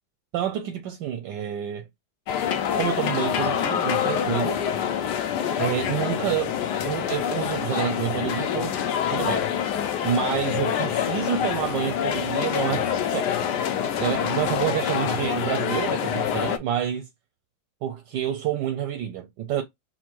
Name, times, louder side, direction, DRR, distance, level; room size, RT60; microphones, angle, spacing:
voice 1, 0.3-1.9 2.8-4.6 5.6-6.5 6.8-8.7 9.1-9.5 10.0-13.3 14.0-17.1 17.8-19.6, right 10 dB, 75° right, 1.1 m, -28 dB
sound 1, 2.3-16.6, left 9 dB, 70° left, 1.0 m, -26 dB
4.3 x 2.1 x 4.4 m
omnidirectional pair, 2.2 m